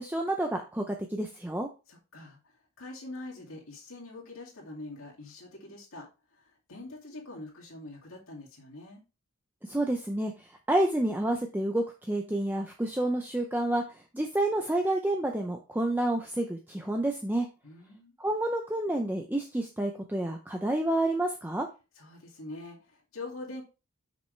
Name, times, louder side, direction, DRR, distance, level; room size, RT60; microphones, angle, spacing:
voice 1, 0.0-1.7 9.6-17.5 18.2-21.7, right 1 dB, 10° right, 3 dB, 0.5 m, -29 dB
voice 2, 1.9-2.4 2.8-9.0 17.6-18.1 22.0-23.6, left 2 dB, 75° left, -3 dB, 2.4 m, -44 dB
6.2 x 5.6 x 3.2 m, 0.29 s
head